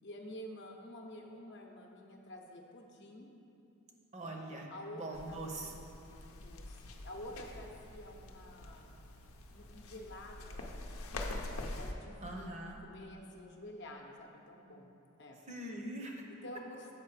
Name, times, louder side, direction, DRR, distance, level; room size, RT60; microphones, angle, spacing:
voice 1, 0.0-3.3 4.7-5.8 6.1-9.1 9.5-14.9 15.2-15.4 16.3-16.9, left 1 dB, 55° left, 1 dB, 0.7 m, -50 dB
voice 2, 4.1-5.7 12.2-12.8 15.5-16.2, right 1 dB, 35° right, 1 dB, 0.7 m, -42 dB
sound 1, 5.1-11.9, left 2 dB, 85° left, 0.7 m, -45 dB
7.4 x 5.2 x 4.9 m, 2.9 s
head